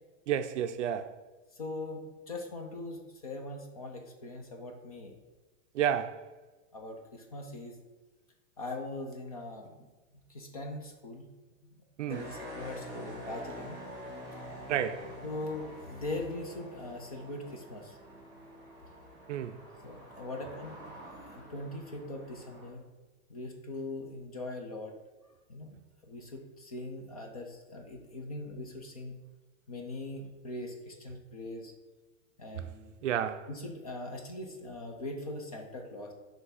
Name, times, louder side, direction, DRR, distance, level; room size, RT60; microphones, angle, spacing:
voice 1, 0.3-1.1 5.7-6.2 12.0-12.2 14.7-15.1 19.3-19.6 33.0-33.5, right 9 dB, 60° right, 0.5 m, -31 dB
voice 2, 1.5-2.0 2.3-5.2 6.7-7.8 8.6-9.9 10.3-11.3 11.6-13.8 14.3-14.4 15.2-18.0 19.8-20.8 21.3-22.8 23.3-24.9 25.5-29.2 29.7-31.7 32.4-32.9 33.5-36.1, left 2 dB, 30° left, 0.4 m, -41 dB
sound 1, 12.1-22.7, equal, 10° right, 1.4 m, -47 dB
5.6 x 3.4 x 5.6 m
supercardioid pair, 180°, 40 cm